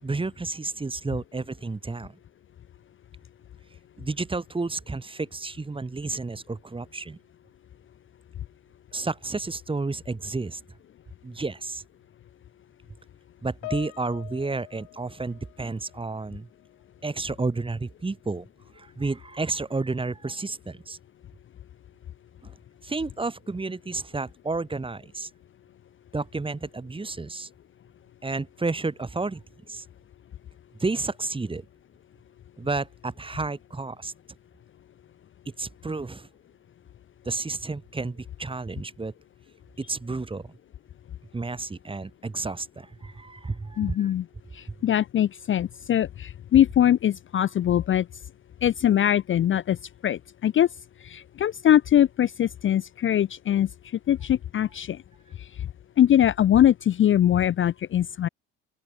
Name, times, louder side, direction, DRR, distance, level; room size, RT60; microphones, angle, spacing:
voice 1, 0.0-2.2 4.0-7.2 8.9-10.6 11.2-11.8 13.4-16.5 17.0-18.5 18.7-21.0 22.4-22.6 22.8-25.3 26.1-27.5 28.2-29.4 29.7-29.9 30.8-31.6 32.6-34.1 35.6-36.3 37.2-39.1 39.8-40.5 41.3-44.1 44.7-44.8, right 3 dB, 15° right, 2.3 m, -31 dB
Piano, 13.6-16.3 16.5-16.9 17.7-17.8, left 24 dB, 75° left, 7.5 m, -43 dB
voice 2, 43.8-44.3 44.5-48.1 48.6-49.8 50.0-50.7 51.0-53.7 54.1-55.0 55.4-55.7 56.0-58.3, left 11 dB, 35° left, 0.7 m, -22 dB
open air
supercardioid pair, 95°, 34 cm